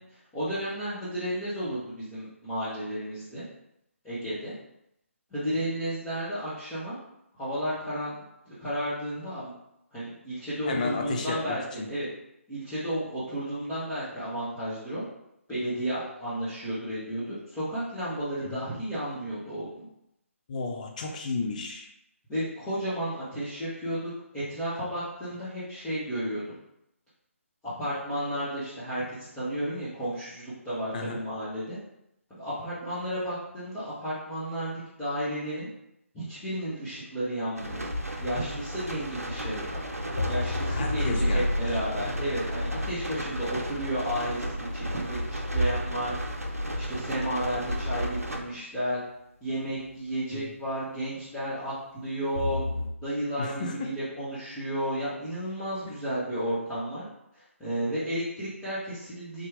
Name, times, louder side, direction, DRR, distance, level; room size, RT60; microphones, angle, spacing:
voice 1, 0.3-3.4 4.0-4.5 5.3-7.0 7.4-8.1 8.5-9.5 9.9-12.1 12.5-15.0 15.5-19.9 22.3-26.6 27.8-31.8 32.3-35.7 36.1-37.8 38.2-39.8 40.3-44.4 44.7-46.4 46.8-49.0 49.4-52.6 53.0-57.0 57.3-59.5, equal, 10° left, -15 dB, 1.1 m, -32 dB
voice 2, 10.7-11.9 18.4-18.6 20.5-21.9 30.9-31.2 40.7-41.5 50.3-50.4 53.4-54.0, left 3 dB, 35° left, 2 dB, 0.6 m, -33 dB
sound 1, 37.5-48.4, equal, 85° right, 0.6 m, -32 dB
sound 2, 40.2-44.6 49.7-50.0 52.3-52.9, left 3 dB, 80° left, 0.8 m, -35 dB
3.5 x 2.9 x 3.5 m, 0.80 s
figure-of-eight pair, 145°, 8 cm